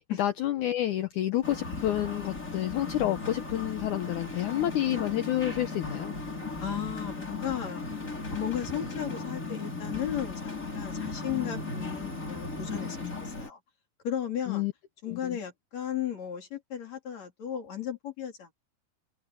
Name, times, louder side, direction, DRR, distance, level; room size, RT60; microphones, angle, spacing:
voice 1, 0.2-6.1 14.5-14.7 15.1-15.4, left 13 dB, 90° left, 1.7 m, -29 dB
sound 1, 1.4-13.5, left 3 dB, 20° left, 5.7 m, -36 dB
voice 2, 6.6-7.9 8.3-13.6 14.0-14.7 15.0-18.5, left 10 dB, 45° left, 4.0 m, -35 dB
sound 2, 7.5-13.0, right 3 dB, 90° right, 10.0 m, -51 dB
omnidirectional pair, 4.7 m